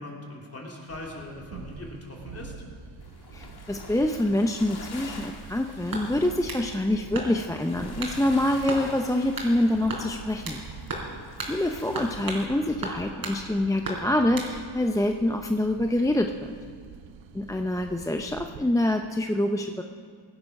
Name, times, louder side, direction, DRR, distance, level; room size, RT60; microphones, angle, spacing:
voice 1, 0.0-2.5, left 1 dB, 30° left, -2 dB, 3.4 m, -41 dB
sound 1, 0.9-18.6, right 6 dB, 85° right, 0.9 m, -45 dB
sound 2, 3.0-12.5, left 4 dB, 55° left, 1.9 m, -47 dB
voice 2, 3.3-10.6 11.5-16.5 17.3-19.8, left 1 dB, 5° left, 5 dB, 0.6 m, -26 dB
sound 3, 5.9-6.7 7.1-7.6 8.0-8.2 8.7-8.9 9.4-9.5 9.9-10.6 10.9-11.1 11.4-11.6 11.9-12.5 12.8-13.4 13.8-14.5, right 2 dB, 50° right, 3.8 m, -34 dB
17.5 x 11.5 x 5.4 m, 2.2 s
cardioid pair, 85°, 45 cm